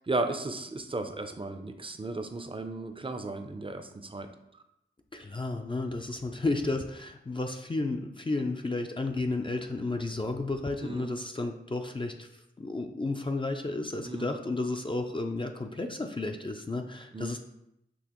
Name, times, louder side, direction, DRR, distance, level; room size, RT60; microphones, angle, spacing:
voice 1, 0.1-4.3 10.8-11.1 14.0-14.3 17.1-17.3, right 2 dB, 25° right, 7 dB, 0.5 m, -35 dB
voice 2, 5.1-17.4, left 2 dB, 25° left, 4 dB, 0.4 m, -32 dB
6.2 x 2.9 x 3.0 m, 0.83 s
cardioid pair, 45°, 20 cm